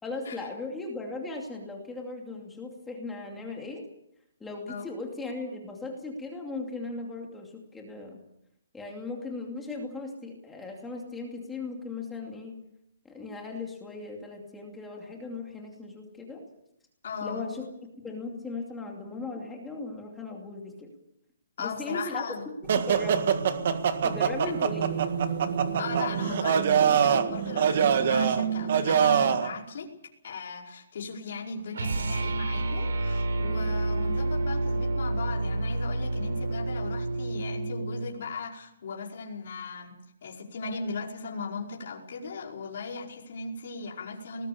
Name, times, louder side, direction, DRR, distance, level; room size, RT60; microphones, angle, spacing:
voice 1, 0.0-3.9 4.4-8.2 8.7-12.6 13.0-16.4 17.2-17.6 18.0-20.9 21.6-22.2 22.9-23.4 24.0-25.0, left 3 dB, 5° left, 0 dB, 2.5 m, -37 dB
voice 2, 17.0-17.5 21.6-22.5 25.8-29.9 30.2-44.5, left 4 dB, 45° left, -1 dB, 5.2 m, -37 dB
sound 1, 22.7-29.5, right 7 dB, 40° right, 1.8 m, -24 dB
sound 2, 31.7-38.1, right 2 dB, 80° right, 4.3 m, -29 dB
24.0 x 20.0 x 7.0 m, 0.77 s
hypercardioid pair, 180°, 0 cm